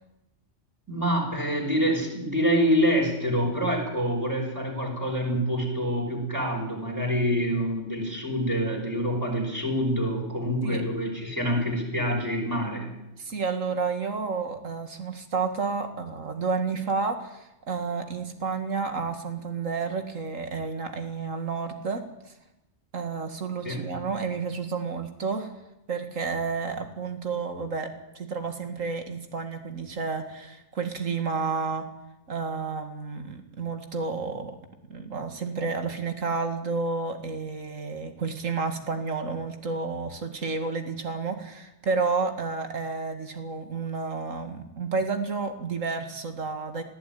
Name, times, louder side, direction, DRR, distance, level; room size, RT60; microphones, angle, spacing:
voice 1, 0.9-12.9 23.6-23.8, equal, 15° right, -2 dB, 5.6 m, -26 dB
voice 2, 13.2-22.3 22.9-25.5 25.9-31.9 32.3-34.6 34.9-46.8, right 4 dB, 80° right, 7 dB, 2.4 m, -31 dB
20.0 x 14.5 x 9.4 m, 0.92 s
omnidirectional pair, 1.3 m